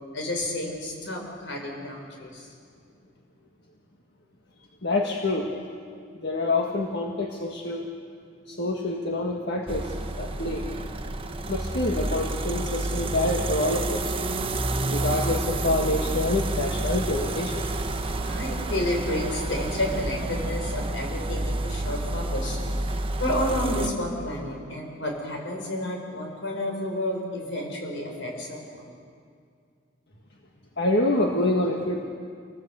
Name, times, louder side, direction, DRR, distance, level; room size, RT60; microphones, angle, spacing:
voice 1, 0.1-2.5 18.1-22.6 23.2-28.9, left 1 dB, 75° left, 1 dB, 6.0 m, -30 dB
voice 2, 4.8-5.5 6.2-7.9 8.5-10.7 11.5-14.2 14.9-17.5 30.8-32.1, left 2 dB, 60° left, 1 dB, 1.7 m, -26 dB
sound 1, 9.7-23.9, right 2 dB, 30° right, 1.1 m, -29 dB
27.5 x 19.0 x 8.3 m, 2.2 s
head